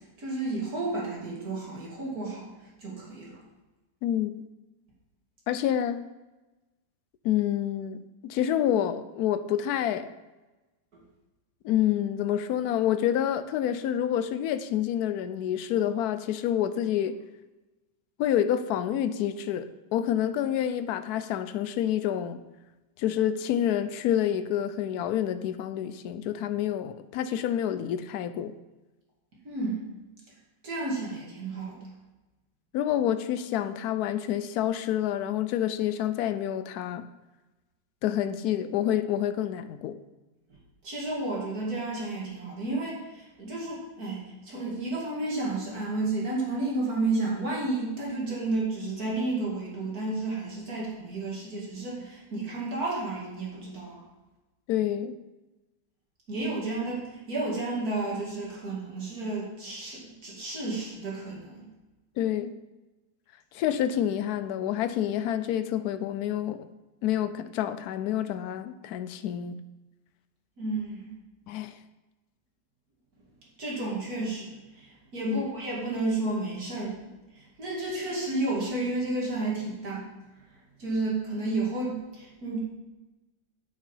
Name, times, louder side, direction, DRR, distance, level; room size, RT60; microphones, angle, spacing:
voice 1, 0.2-2.5 2.8-3.4 29.4-29.8 30.6-31.8 40.8-54.0 56.3-61.7 70.6-71.1 73.6-77.0 77.3-80.1 80.8-82.6, right 2 dB, 50° right, 2.8 m, -31 dB
voice 2, 4.0-4.4 5.5-6.0 7.2-10.1 11.6-17.1 18.2-22.4 23.0-28.5 32.7-37.1 38.0-40.0 54.7-55.2 62.2-62.5 63.5-66.7 67.0-69.6 71.5-71.7 75.3-75.5, left 10 dB, 75° left, 0.9 m, -28 dB
8.8 x 6.7 x 5.5 m
omnidirectional pair, 2.1 m